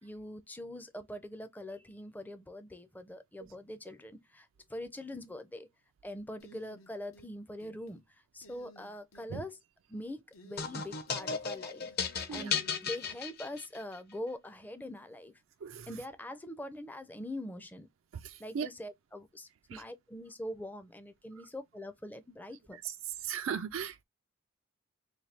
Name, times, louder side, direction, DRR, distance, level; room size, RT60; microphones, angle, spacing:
voice 1, 0.0-5.7 6.0-9.6 9.9-15.4 15.9-17.9 18.4-22.8, left 1 dB, 10° left, 0.4 m, -43 dB
sound 1, 6.4-7.3 7.6-8.0 8.4-9.3 10.3-11.3 11.5-13.2, left 1 dB, 85° left, 0.9 m, -57 dB
sound 2, 10.6-14.0, left 6 dB, 50° left, 0.7 m, -35 dB
voice 2, 18.2-18.7 19.7-19.8 23.2-24.0, right 7 dB, 75° right, 0.4 m, -37 dB
4.2 x 2.2 x 3.2 m
head